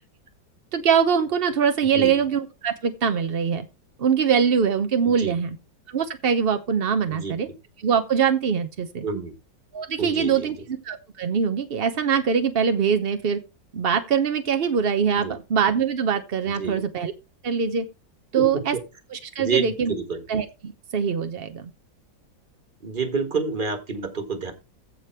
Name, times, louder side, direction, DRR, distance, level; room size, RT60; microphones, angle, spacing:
voice 1, 0.7-3.7 4.0-5.6 5.9-7.5 7.8-9.0 9.7-13.4 13.7-17.1 17.4-17.9 18.3-18.8 19.1-19.9 20.3-21.7, right 7 dB, 60° right, 8 dB, 0.6 m, -23 dB
voice 2, 5.0-5.4 7.1-7.4 9.0-9.3 10.0-10.5 15.2-15.3 16.6-16.8 18.3-18.8 19.4-20.2 22.8-24.5, right 4 dB, 30° right, 8 dB, 1.5 m, -28 dB
15.0 x 5.1 x 4.5 m, 0.29 s
omnidirectional pair, 2.0 m